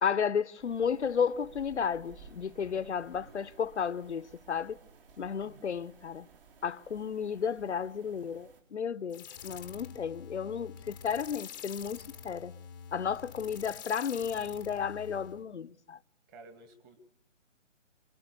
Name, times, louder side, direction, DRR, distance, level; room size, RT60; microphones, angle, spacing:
voice 1, 0.0-4.8 5.2-6.3 6.6-12.6 12.9-16.0, left 7 dB, 60° left, 1.0 m, -33 dB
sound 1, 0.6-8.6, right 5 dB, 45° right, 4.9 m, -56 dB
voice 2, 5.4-5.7 16.3-17.0, right 3 dB, 15° right, 2.5 m, -54 dB
sound 2, 9.1-15.4, left 8 dB, 15° left, 1.1 m, -47 dB
26.5 x 23.5 x 6.8 m
hypercardioid pair, 160°, 39 cm